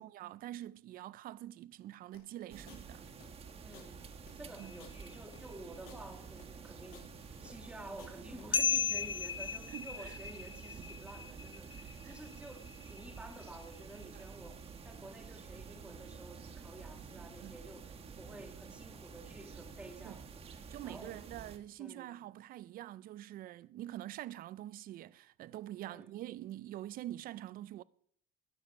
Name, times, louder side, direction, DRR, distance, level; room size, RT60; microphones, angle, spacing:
voice 1, 0.0-3.0 4.6-4.7 9.7-10.2 12.0-12.1 14.1-14.3 17.4-17.5 20.0-20.2 20.7-27.8, right 13 dB, 45° right, 0.4 m, -45 dB
sound 1, 2.1-8.4, left 8 dB, 90° left, 3.0 m, -58 dB
sound 2, 2.5-21.6, right 5 dB, 30° right, 1.4 m, -50 dB
voice 2, 3.6-4.1 4.3-7.1 7.4-21.2 21.8-22.2 25.8-26.1, right 1 dB, 5° right, 1.8 m, -51 dB
sound 3, 4.6-5.2 8.5-14.3, left 6 dB, 25° left, 0.7 m, -37 dB
20.5 x 7.0 x 5.3 m
cardioid pair, 150°, 21 cm